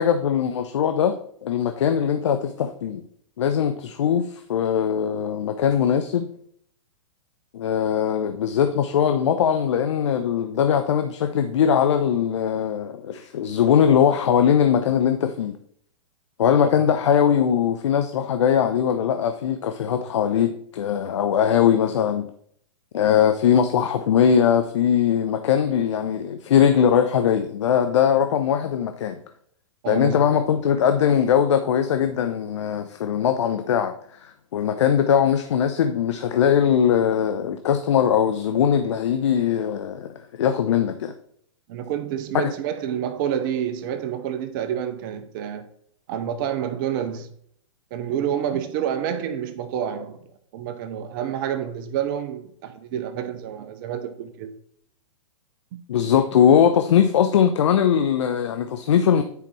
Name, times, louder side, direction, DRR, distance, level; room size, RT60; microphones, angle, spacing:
voice 1, 0.0-3.0 3.4-6.3 7.5-15.6 16.4-22.3 22.9-29.2 29.9-41.1 42.3-42.5 55.9-59.2, left 8 dB, 65° left, 0.6 m, -21 dB
voice 2, 29.8-30.4 41.7-45.6 46.1-47.3 47.9-50.2 50.5-54.5 55.7-55.8, right 9 dB, 40° right, 0.7 m, -28 dB
9.6 x 4.9 x 3.2 m
hypercardioid pair, 115°, 16 cm